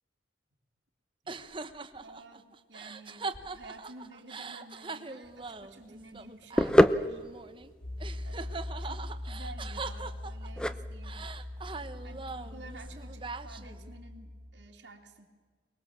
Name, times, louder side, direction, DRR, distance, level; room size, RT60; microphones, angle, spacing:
sound 1, 1.3-7.7 8.0-10.7 11.0-13.9, right 4 dB, 30° right, 1.0 m, -42 dB
voice 1, 2.0-7.2 8.2-11.2 12.0-15.3, right 2 dB, 80° right, -1 dB, 3.0 m, -51 dB
sound 2, 5.2-13.1, equal, 5° left, 0.6 m, -30 dB
sound 3, 7.8-14.5, left 1 dB, 55° left, 4.1 m, -41 dB
23.5 x 21.5 x 7.4 m, 1.5 s
head